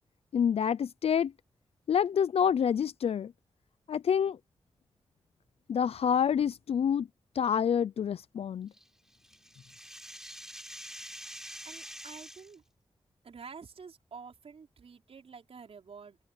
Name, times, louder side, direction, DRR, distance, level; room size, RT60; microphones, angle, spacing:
voice 1, 0.3-1.3 1.9-3.3 3.9-4.4 5.7-7.1 7.4-8.7, left 8 dB, 75° left, 0.4 m, -27 dB
sound 1, 8.7-12.5, equal, 5° right, 6.1 m, -46 dB
voice 2, 11.6-12.6 13.2-16.2, right 5 dB, 75° right, 4.8 m, -49 dB
open air
cardioid pair, 55°, 10 cm